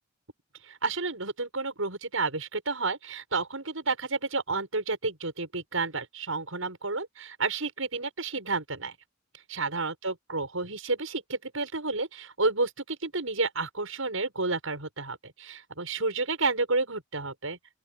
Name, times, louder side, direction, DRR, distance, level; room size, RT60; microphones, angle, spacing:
voice 1, 0.7-8.9 9.5-17.6, right 3 dB, 85° right, 6.8 m, -31 dB
open air
head